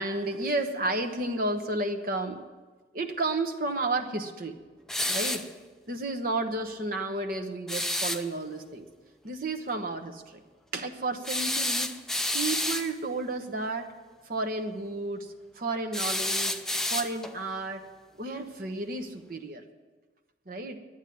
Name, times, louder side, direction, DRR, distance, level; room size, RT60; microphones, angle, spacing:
voice 1, 0.0-2.4 2.9-4.5 5.1-5.5 5.9-8.9 9.2-10.4 10.7-11.9 12.3-13.9 14.2-15.3 15.5-16.6 16.9-17.8 18.2-19.6 20.5-20.8, right 2 dB, 50° right, 5 dB, 1.1 m, -32 dB
sound 1, 4.9-5.5 7.7-8.2 11.2-12.9 15.9-17.4, left 1 dB, 5° left, 0.4 m, -29 dB
11.0 x 9.1 x 9.3 m, 1.3 s
head